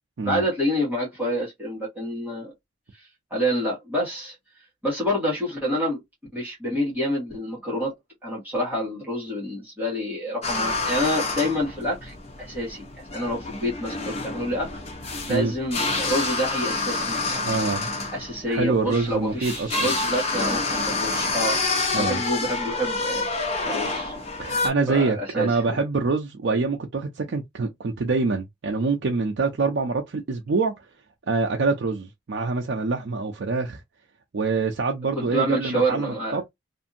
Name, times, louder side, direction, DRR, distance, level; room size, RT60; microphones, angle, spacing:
voice 1, 0.2-2.5 3.3-4.4 4.8-6.0 6.3-7.9 8.2-14.7 15.3-17.6 18.1-21.6 21.9-23.2 23.6-24.1 24.9-25.6 35.1-36.4, equal, 10° right, 1.3 m, -27 dB
sound 1, 10.4-24.7, left 3 dB, 30° left, 0.8 m, -28 dB
voice 2, 17.4-17.9 18.5-19.9 21.9-22.2 24.4-30.7 31.3-33.8 34.3-36.4, right 4 dB, 55° right, 0.4 m, -25 dB
2.7 x 2.5 x 2.5 m
head